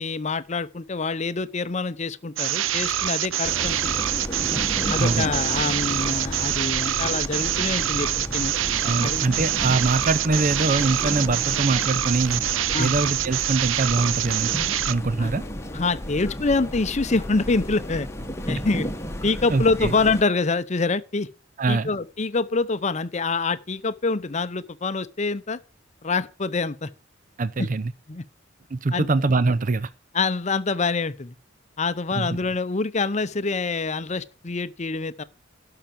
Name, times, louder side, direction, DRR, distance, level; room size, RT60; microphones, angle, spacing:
voice 1, 0.0-4.0 4.9-8.5 9.0-9.3 12.7-12.9 15.2-15.3 15.7-18.1 18.5-18.9 19.2-21.3 21.7-25.6 26.0-26.9 27.6-27.7 28.1-28.2 28.9-29.1 30.1-31.4 31.8-35.2, left 3 dB, 35° left, 0.7 m, -26 dB
sound 1, 2.4-14.9, right 12 dB, 85° right, 0.6 m, -25 dB
sound 2, 3.4-20.2, left 1 dB, 15° left, 1.2 m, -33 dB
voice 2, 8.8-12.4 12.8-14.5 14.9-15.4 19.5-19.9 21.6-21.9 27.4-27.9 28.7-29.9 32.1-32.4, right 3 dB, 40° right, 0.5 m, -23 dB
12.0 x 5.8 x 7.5 m
head